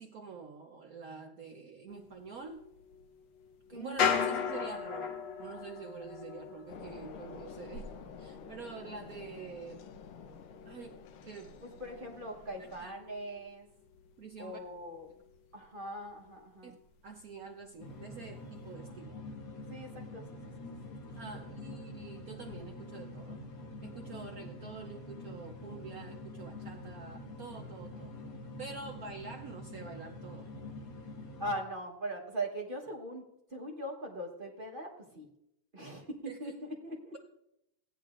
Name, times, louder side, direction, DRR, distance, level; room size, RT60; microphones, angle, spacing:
voice 1, 0.0-2.6 3.7-9.9 10.6-11.6 12.8-13.0 14.2-14.6 16.6-16.7 17.0-19.2 21.1-23.4 23.8-28.2 28.6-30.5 36.3-36.5, right 5 dB, 65° right, 2 dB, 0.9 m, -47 dB
sound 1, 1.9-13.5 13.8-15.4 15.6-15.7 16.1-16.6 16.9-18.1 18.6-18.7, left 7 dB, 65° left, 1.3 m, -39 dB
voice 2, 3.7-4.3 11.8-13.7 14.4-15.1 15.5-16.8 19.7-21.0 21.4-21.5 31.4-35.3 35.7-37.1, right 1 dB, 35° right, -1 dB, 1.0 m, -41 dB
sound 2, 6.7-12.9, left 4 dB, 80° left, 1.6 m, -49 dB
sound 3, 17.8-31.6, left 2 dB, 50° left, 1.4 m, -46 dB
15.5 x 9.7 x 2.5 m, 0.81 s
omnidirectional pair, 2.3 m